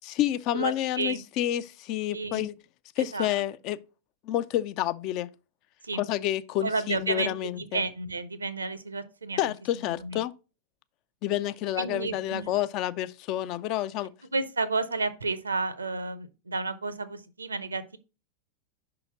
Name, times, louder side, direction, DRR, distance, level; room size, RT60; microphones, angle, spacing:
voice 1, 0.0-2.5 3.0-3.8 4.2-5.3 5.9-7.8 9.4-10.3 11.2-14.1, left 13 dB, 40° left, 0.4 m, -29 dB
voice 2, 0.5-1.2 2.1-2.5 3.0-3.3 5.8-6.0 6.6-9.4 9.9-10.2 11.8-12.4 14.3-18.0, right 3 dB, 75° right, 0.6 m, -31 dB
5.6 x 3.9 x 5.7 m
figure-of-eight pair, 90°, 0 cm